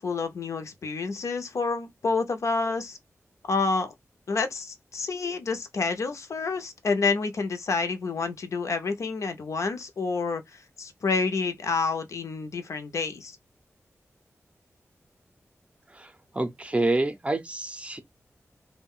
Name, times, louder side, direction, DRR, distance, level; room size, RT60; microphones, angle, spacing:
voice 1, 0.0-3.0 3.5-3.9 4.3-13.4, left 4 dB, 75° left, 0.6 m, -28 dB
voice 2, 15.9-18.0, right 2 dB, 25° right, 0.5 m, -28 dB
2.3 x 2.2 x 3.5 m
wide cardioid pair, 105°, 5 cm